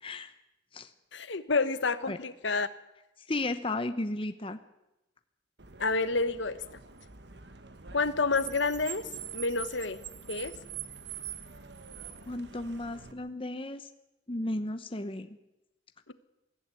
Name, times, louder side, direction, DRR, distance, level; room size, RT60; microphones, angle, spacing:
voice 1, 0.0-0.3 0.7-0.9 2.1-2.2 3.3-4.6 12.3-13.9 14.3-15.3, left 2 dB, 25° left, 9 dB, 0.8 m, -34 dB
voice 2, 1.1-2.7 5.8-6.6 7.9-9.1 9.3-10.0 10.3-10.5 16.1-16.2, left 3 dB, 65° left, 13 dB, 1.2 m, -29 dB
Car, 5.6-13.1, right 9 dB, 55° right, 1.3 m, -44 dB
22.0 x 14.5 x 9.7 m, 0.97 s
head